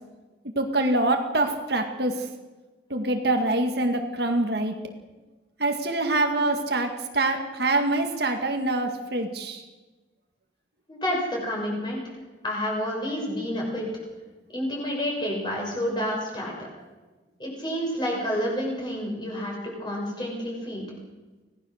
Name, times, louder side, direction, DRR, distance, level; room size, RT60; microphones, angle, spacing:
voice 1, 0.6-2.3 2.9-4.8 5.6-9.6, right 2 dB, 60° right, 4 dB, 2.0 m, -25 dB
voice 2, 10.9-12.0 12.4-13.9 14.5-16.7 17.4-20.9, equal, 25° left, -2 dB, 6.7 m, -29 dB
25.5 x 17.5 x 6.6 m, 1.2 s
head